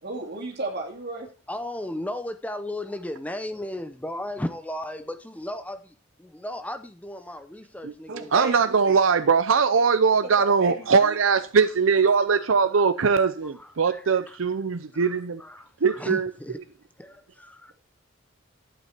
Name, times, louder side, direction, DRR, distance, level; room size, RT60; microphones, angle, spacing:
voice 1, 0.0-1.3 8.1-8.6 8.8-9.0 10.2-11.2, right 2 dB, 55° right, 2.9 m, -33 dB
voice 2, 1.5-8.3 12.4-12.5 13.4-14.4 14.9-16.6 17.0-17.7, left 1 dB, 10° left, 0.7 m, -35 dB
voice 3, 8.3-15.4 15.8-16.3, right 5 dB, 85° right, 0.6 m, -21 dB
12.0 x 8.5 x 4.5 m
head